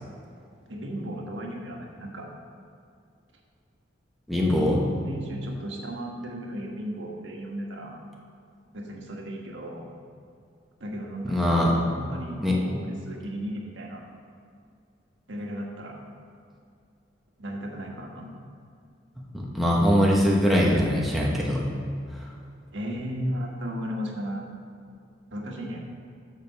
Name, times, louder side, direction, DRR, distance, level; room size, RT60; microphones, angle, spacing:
voice 1, 0.7-2.3 4.4-8.0 8.7-9.9 10.8-11.4 11.7-14.0 15.3-16.0 17.4-18.3 22.7-24.5 25.3-25.8, equal, 80° right, 0 dB, 1.4 m, -35 dB
voice 2, 4.3-4.8 11.2-11.7 12.4-12.6 19.3-21.6, equal, ahead, -4 dB, 1.0 m, -22 dB
7.5 x 5.2 x 6.8 m, 2.4 s
head